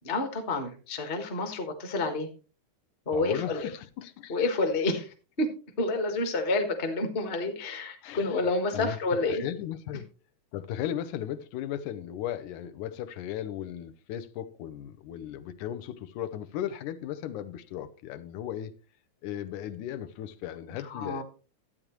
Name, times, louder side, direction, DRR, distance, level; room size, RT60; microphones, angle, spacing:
voice 1, 0.0-2.3 3.1-3.7 4.3-5.5 5.8-9.4 20.8-21.2, left 2 dB, 35° left, 0.8 m, -29 dB
voice 2, 3.1-4.5 8.0-8.4 8.7-10.1 10.5-18.7 19.2-21.2, left 11 dB, 90° left, 2.2 m, -36 dB
12.5 x 8.8 x 3.1 m
omnidirectional pair, 3.5 m